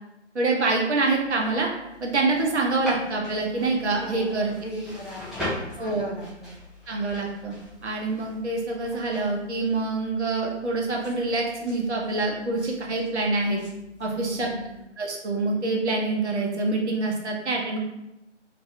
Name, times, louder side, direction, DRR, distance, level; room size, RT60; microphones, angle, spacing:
voice 1, 0.3-1.7 2.0-4.5 5.8-6.0 6.9-7.6 7.8-13.6 14.0-14.5 15.0-17.8, right 3 dB, 65° right, 0 dB, 0.7 m, -26 dB
sound 1, 1.0-14.8, left 1 dB, ahead, 0.3 m, -41 dB
voice 2, 4.0-6.5 14.1-14.7, equal, 50° left, -2 dB, 0.5 m, -38 dB
2.7 x 2.3 x 2.2 m, 0.91 s
figure-of-eight pair, 165°, 37 cm